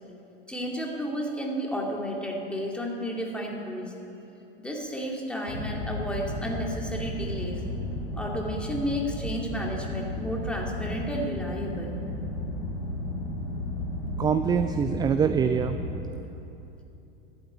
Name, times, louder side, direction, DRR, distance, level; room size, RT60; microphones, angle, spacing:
voice 1, 0.5-3.9 4.6-7.6 8.1-12.0, equal, 5° left, -1 dB, 2.3 m, -32 dB
sound 1, 5.5-16.0, left 1 dB, 70° left, 2.2 m, -33 dB
voice 2, 14.2-15.8, right 7 dB, 15° right, 10 dB, 0.4 m, -24 dB
11.5 x 9.0 x 9.0 m, 2.9 s
figure-of-eight pair, 80°, 30 cm